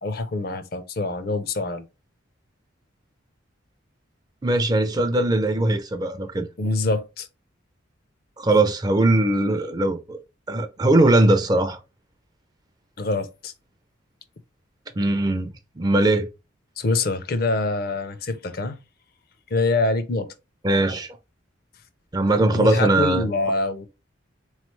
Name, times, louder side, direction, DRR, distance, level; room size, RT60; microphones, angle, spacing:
voice 1, 0.0-1.8 6.6-7.3 13.0-13.5 16.8-18.8 19.5-20.3 22.5-23.9, left 3 dB, 50° left, 0.5 m, -25 dB
voice 2, 4.4-6.5 8.4-10.2 10.5-11.8 15.0-16.3 20.6-21.2 22.1-23.3, right 2 dB, 20° right, 0.4 m, -20 dB
3.8 x 3.1 x 3.1 m
head